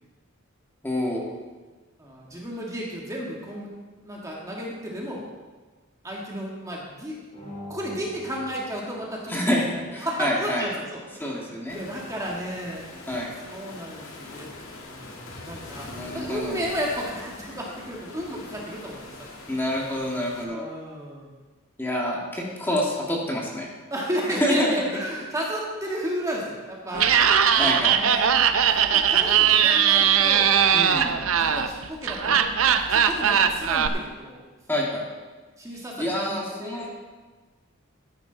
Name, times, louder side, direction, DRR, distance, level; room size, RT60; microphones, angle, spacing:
voice 1, 0.8-1.3 9.3-9.6 9.9-10.6 11.2-11.8 13.1-13.3 15.9-16.6 19.5-20.7 21.8-23.7 24.3-24.7 27.6-27.9 30.7-31.1 34.7-35.1 35.7-36.9, left 1 dB, 10° left, -3 dB, 1.8 m, -27 dB
voice 2, 2.0-3.7 4.0-5.2 6.0-7.2 7.7-9.7 10.0-12.8 13.5-14.5 14.8-15.9 16.1-19.3 20.5-21.3 23.9-27.1 27.5-28.3 28.6-30.5 31.0-34.4 35.6-36.9, equal, 15° right, -3 dB, 1.7 m, -33 dB
sound 1, 7.3-10.0, left 1 dB, 35° left, 4.0 m, -43 dB
Waves surf, 11.7-20.4, left 2 dB, 75° left, 2.0 m, -43 dB
Laughter, 26.9-33.9, right 8 dB, 70° right, 0.6 m, -20 dB
13.0 x 10.0 x 3.9 m, 1.3 s
head